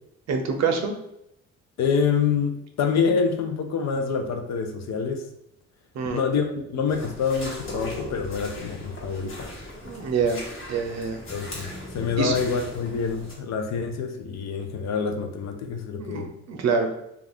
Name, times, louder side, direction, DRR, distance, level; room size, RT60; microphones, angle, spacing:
voice 1, 0.3-0.9 5.9-6.2 9.8-11.2 12.2-12.3 16.0-16.9, right 5 dB, 60° right, 4 dB, 0.6 m, -26 dB
voice 2, 1.8-5.2 6.1-9.5 11.3-11.7 11.9-16.3, left 5 dB, 65° left, 5 dB, 0.5 m, -26 dB
sound 1, 6.9-13.3, left 1 dB, 45° left, 1.1 m, -41 dB
sound 2, 7.6-8.7 8.9-13.3, left 1 dB, 20° left, 1.2 m, -41 dB
2.4 x 2.3 x 3.4 m, 0.79 s
cardioid pair, 90°, 30 cm